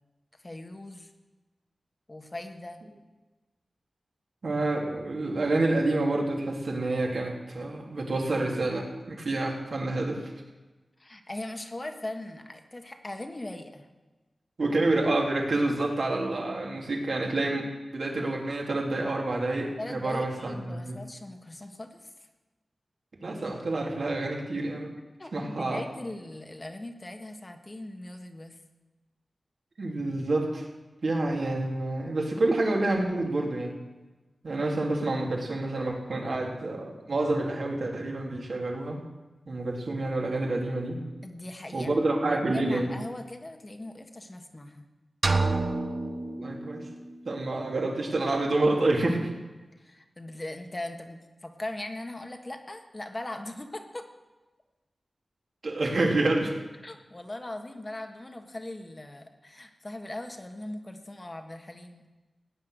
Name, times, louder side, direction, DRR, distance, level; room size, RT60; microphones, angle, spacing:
voice 1, 0.4-1.1 2.1-2.8 11.0-13.9 19.8-22.0 25.2-28.6 41.2-44.8 49.8-54.1 56.8-62.1, left 1 dB, 30° left, 5 dB, 1.6 m, -39 dB
voice 2, 4.4-10.2 14.6-21.0 23.2-24.9 25.3-25.8 29.8-30.6 31.0-33.7 34.4-39.0 39.5-41.0 41.7-42.9 46.4-46.8 47.2-49.3 55.6-56.5, right 2 dB, 70° right, -1 dB, 3.1 m, -28 dB
sound 1, 45.2-47.2, right 3 dB, 50° right, 1.2 m, -28 dB
17.0 x 9.8 x 6.6 m, 1.2 s
wide cardioid pair, 85°, 0 cm